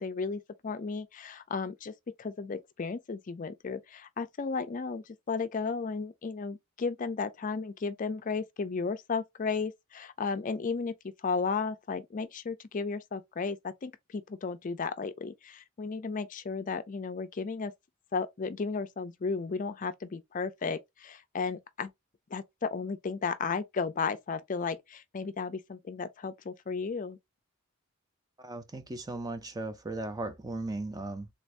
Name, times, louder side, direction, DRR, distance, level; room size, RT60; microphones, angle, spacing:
voice 1, 0.0-1.9 2.2-11.0 11.2-17.7 18.1-21.9 22.3-27.2, left 4 dB, 40° left, 0.4 m, -34 dB
voice 2, 28.4-31.3, right 2 dB, 20° right, 0.5 m, -37 dB
3.4 x 2.6 x 3.1 m
head